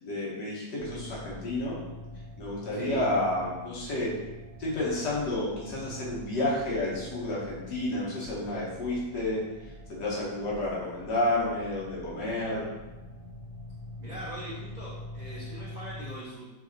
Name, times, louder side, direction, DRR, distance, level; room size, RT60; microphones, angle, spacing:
voice 1, 0.0-1.8 2.4-4.1 4.6-9.4 9.9-12.7, left 1 dB, 80° left, -6 dB, 1.5 m, -30 dB
sound 1, 0.7-16.1, left 1 dB, 30° right, 0.7 m, -44 dB
voice 2, 2.7-3.1 14.0-16.5, equal, 70° right, -10 dB, 0.4 m, -41 dB
4.1 x 2.7 x 2.5 m, 1.1 s
omnidirectional pair, 1.8 m